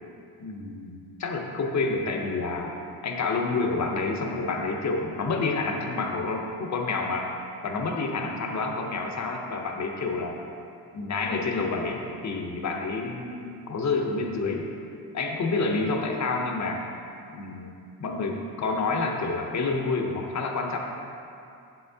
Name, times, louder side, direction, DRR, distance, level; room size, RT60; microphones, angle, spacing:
voice 1, 0.4-2.7 3.0-7.3 7.6-10.4 10.9-14.7 15.1-16.8 17.3-17.7 18.0-20.8, left 3 dB, 50° left, 2 dB, 0.7 m, -28 dB
7.1 x 5.7 x 2.7 m, 2.5 s
wide cardioid pair, 115°, 37 cm